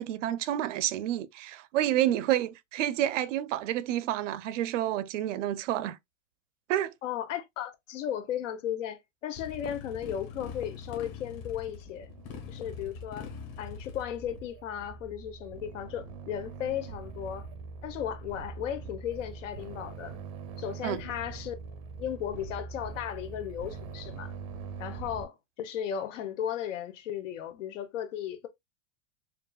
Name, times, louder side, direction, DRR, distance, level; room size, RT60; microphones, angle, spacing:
voice 1, 0.0-6.0 6.7-6.9 20.8-21.0, right 12 dB, 80° right, 0.6 m, -29 dB
voice 2, 7.0-12.1 12.5-13.3 13.6-17.5 17.8-20.2 20.6-21.5 22.0-24.3 24.8-28.5, left 10 dB, 80° left, 1.0 m, -35 dB
Motorcycle, 9.3-14.5, left 6 dB, 30° left, 1.0 m, -43 dB
sound 1, 11.5-25.3, right 5 dB, 30° right, 0.5 m, -43 dB
5.2 x 2.4 x 2.3 m
supercardioid pair, 175°, 37 cm